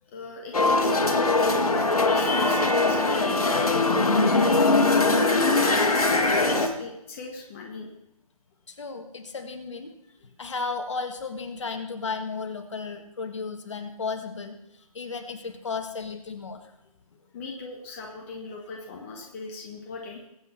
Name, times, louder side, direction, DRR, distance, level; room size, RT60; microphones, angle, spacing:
voice 1, 0.0-4.0 4.3-6.1 6.4-7.9 17.3-20.3, left 3 dB, 20° left, 0 dB, 1.3 m, -39 dB
sound 1, 0.5-6.7, left 2 dB, 75° left, 1.9 m, -21 dB
voice 2, 8.7-10.0 10.4-14.6 14.9-16.7, left 4 dB, 50° left, 6 dB, 1.7 m, -34 dB
22.0 x 7.9 x 4.3 m, 0.83 s
figure-of-eight pair, 155°, 19 cm